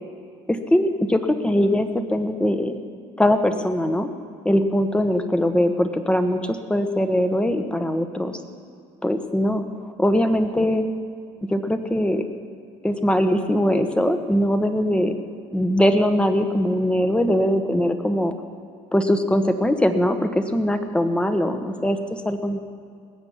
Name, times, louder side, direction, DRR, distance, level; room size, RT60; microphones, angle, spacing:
voice 1, 0.5-2.8 3.2-4.1 4.4-8.4 9.0-10.8 11.5-12.2 12.8-15.2 15.5-18.3 18.9-22.6, left 1 dB, 10° left, 8 dB, 1.2 m, -21 dB
19.5 x 8.0 x 7.3 m, 2.2 s
supercardioid pair, 100°, 12 cm